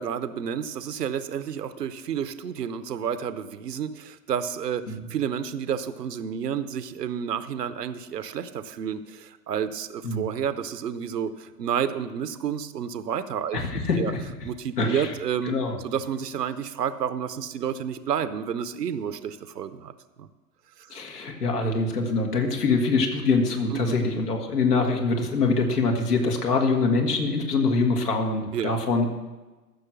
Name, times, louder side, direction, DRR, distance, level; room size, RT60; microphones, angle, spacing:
voice 1, 0.0-4.8 5.1-13.6 13.9-14.1 14.4-15.5 15.8-19.9 20.2-20.3 23.7-23.9 28.5-28.8, right 8 dB, 75° right, 13 dB, 0.8 m, -30 dB
voice 2, 13.5-14.2 14.8-15.1 15.5-15.8 20.9-29.1, left 3 dB, 70° left, 3 dB, 1.9 m, -24 dB
14.0 x 6.6 x 5.9 m, 1.2 s
figure-of-eight pair, 95°, 49 cm